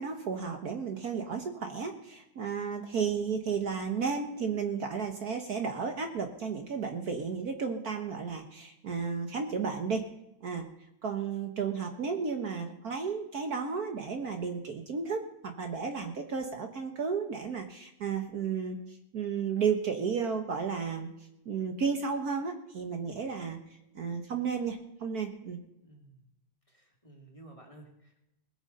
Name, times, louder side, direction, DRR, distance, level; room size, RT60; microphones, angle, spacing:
voice 1, 0.0-10.1 10.4-10.7 11.0-21.1 21.5-25.6, right 6 dB, 55° right, 5 dB, 1.6 m, -33 dB
voice 2, 25.8-26.3 26.7-28.2, right 2 dB, 15° left, 0 dB, 2.4 m, -54 dB
19.5 x 8.9 x 5.5 m, 0.87 s
omnidirectional pair, 2.0 m